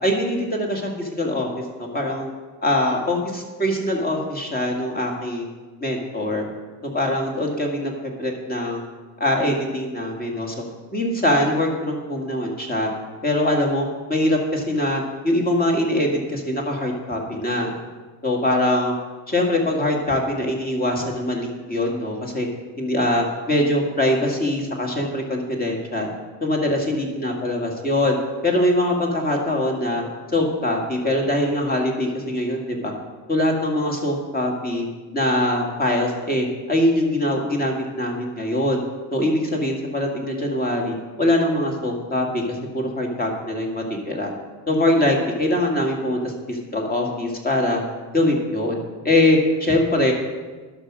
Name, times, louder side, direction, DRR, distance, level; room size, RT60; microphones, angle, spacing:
voice 1, 0.0-1.5 1.8-2.3 2.6-5.5 5.8-6.5 6.9-7.9 8.2-8.8 9.2-10.6 10.9-12.9 13.2-17.7 18.2-18.9 19.3-22.5 22.8-26.1 26.4-28.2 28.4-30.0 30.3-32.9 33.3-34.9 35.1-38.8 39.1-44.3 44.7-47.8 48.1-48.8 49.0-50.1, left 1 dB, 20° left, 1 dB, 2.3 m, -22 dB
11.5 x 6.3 x 6.3 m, 1.3 s
cardioid pair, 110°, 46 cm